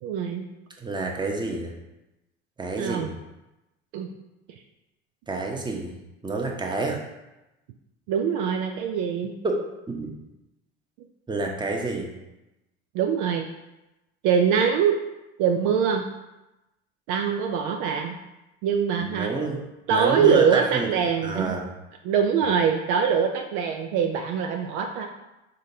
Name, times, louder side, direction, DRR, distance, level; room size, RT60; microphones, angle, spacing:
voice 1, 0.0-0.5 2.8-3.1 3.9-4.1 8.1-9.3 12.9-13.4 14.2-15.0 15.4-16.1 17.1-18.1 18.6-19.3 19.9-21.6 22.0-25.1, right 7 dB, 60° right, 4 dB, 0.5 m, -23 dB
voice 2, 0.8-1.7 2.6-3.2 5.3-5.9 6.2-7.0 9.4-9.6 9.9-10.1 11.3-12.1 19.0-19.6 19.9-20.9 21.2-21.7, right 3 dB, 15° right, 1 dB, 0.9 m, -28 dB
5.1 x 3.7 x 2.8 m, 0.98 s
figure-of-eight pair, 65°, 34 cm